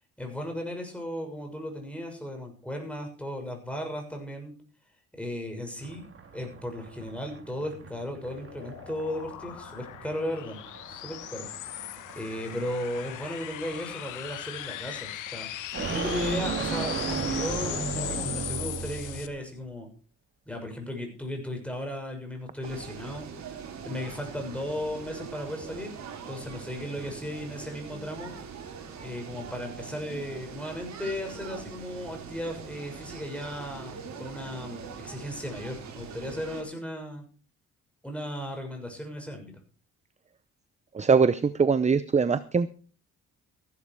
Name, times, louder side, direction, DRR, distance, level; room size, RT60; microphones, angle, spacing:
voice 1, 0.2-4.5 5.1-6.1 6.3-10.6 10.9-11.5 12.1-19.9 20.5-23.3 23.8-25.9 26.3-28.3 29.0-37.2 38.0-39.6, equal, 5° left, 3 dB, 6.6 m, -36 dB
sound 1, 5.8-19.3, right 4 dB, 45° right, 4.0 m, -36 dB
sound 2, 7.5-19.3, left 14 dB, 85° left, 1.3 m, -39 dB
sound 3, 22.6-36.6, right 6 dB, 65° right, 4.1 m, -42 dB
voice 2, 40.9-42.7, right 5 dB, 25° right, 14 dB, 0.7 m, -22 dB
15.0 x 11.5 x 4.9 m, 0.39 s
cardioid pair, 90°, 30 cm